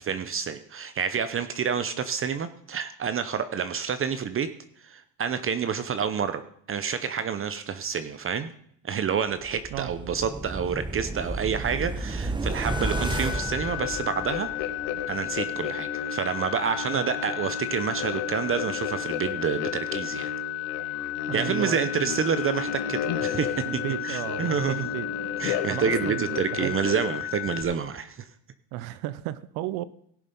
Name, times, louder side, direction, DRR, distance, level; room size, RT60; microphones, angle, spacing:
voice 1, 0.0-4.5 4.8-6.4 6.7-8.5 8.8-14.5 15.1-20.3 21.3-23.6 24.0-24.8 25.4-28.3, right 7 dB, 35° right, 12 dB, 0.8 m, -28 dB
sound 1, 9.4-14.6 15.0-15.1, right 2 dB, 10° right, 1.0 m, -32 dB
sound 2, 12.7-27.6, left 18 dB, 35° left, 1.3 m, -34 dB
sound 3, 13.7-27.2, left 7 dB, 90° left, 1.3 m, -34 dB
voice 2, 21.3-22.2 23.7-25.1 25.7-26.8 28.7-29.9, right 15 dB, 80° right, 16 dB, 0.7 m, -34 dB
16.5 x 7.1 x 5.5 m, 0.67 s
cardioid pair, 110°, 38 cm